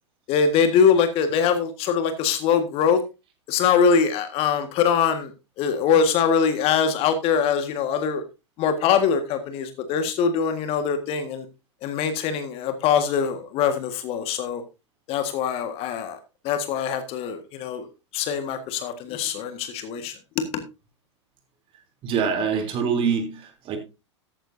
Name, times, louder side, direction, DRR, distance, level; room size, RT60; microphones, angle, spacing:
voice 1, 0.3-3.0 3.5-5.3 5.6-8.2 8.6-11.4 11.8-14.6 15.1-16.2 16.4-17.9 18.1-20.6, left 6 dB, 40° left, 8 dB, 1.8 m, -23 dB
voice 2, 22.0-23.8, right 6 dB, 35° right, 5 dB, 3.3 m, -24 dB
14.0 x 10.0 x 2.7 m, 0.27 s
figure-of-eight pair, 95°, 15 cm